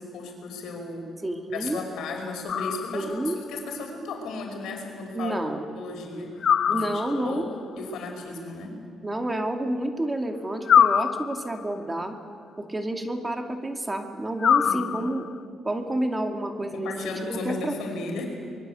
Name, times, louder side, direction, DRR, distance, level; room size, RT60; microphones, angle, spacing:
voice 1, 0.0-1.1 1.5-5.4 5.8-6.4 6.7-6.9 7.2-7.5 7.8-8.7 14.6-15.2 16.6-18.3, left 3 dB, 80° left, 3 dB, 5.5 m, -35 dB
voice 2, 1.2-1.8 2.9-3.4 5.1-5.7 6.7-7.4 9.0-12.2 12.6-15.3 15.6-17.7, right 1 dB, 15° right, 5 dB, 2.4 m, -29 dB
sound 1, 2.5-3.3 6.4-7.4 10.7-11.7 14.4-15.4, left 8 dB, 60° left, 0.6 m, -23 dB
25.0 x 22.0 x 8.1 m, 2.3 s
cardioid pair, 90°, 0 cm